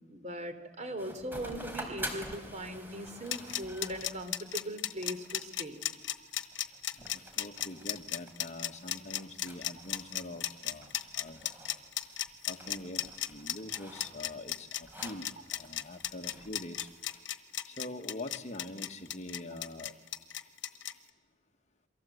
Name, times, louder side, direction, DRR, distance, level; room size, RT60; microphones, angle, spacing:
voice 1, 0.1-5.8, equal, 40° right, 8 dB, 3.1 m, -40 dB
sound 1, 1.0-17.2, right 1 dB, 10° right, 4.2 m, -48 dB
sound 2, 3.1-20.9, left 12 dB, 85° left, 1.2 m, -35 dB
voice 2, 7.0-11.5 12.5-15.3 15.6-16.9 17.7-19.9, left 2 dB, 40° left, 5 dB, 1.7 m, -44 dB
29.0 x 23.5 x 8.0 m, 1.3 s
head